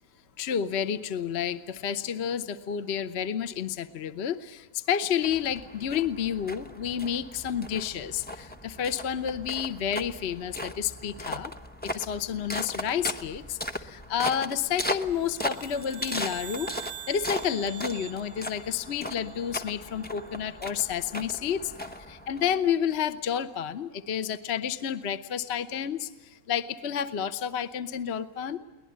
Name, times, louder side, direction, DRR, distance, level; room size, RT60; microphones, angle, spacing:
voice 1, 0.4-11.5 11.8-16.7 17.1-21.7 22.0-28.6, left 8 dB, 45° left, 11 dB, 1.0 m, -30 dB
sound 1, 5.2-22.9, equal, 10° left, 0.5 m, -38 dB
sound 2, 15.1-19.6, right 8 dB, 45° right, 0.9 m, -44 dB
23.0 x 19.0 x 9.4 m, 1.2 s
omnidirectional pair, 1.8 m